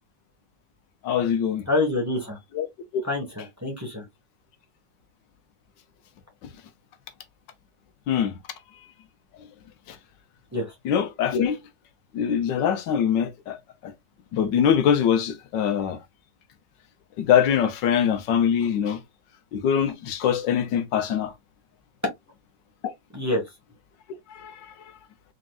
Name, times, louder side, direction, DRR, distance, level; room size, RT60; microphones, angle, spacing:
voice 1, 1.0-1.6 2.5-2.7 2.9-3.0 8.1-8.4 9.9-10.0 10.8-11.6 12.1-13.6 13.8-13.9 14.3-16.0 17.2-19.0 19.5-21.3 24.3-24.7, left 8 dB, 85° left, 1.5 m, -23 dB
voice 2, 1.7-2.4 3.0-4.0 10.5-10.7 23.1-23.4, left 2 dB, 10° right, 1.1 m, -26 dB
4.4 x 3.8 x 2.3 m
omnidirectional pair, 1.9 m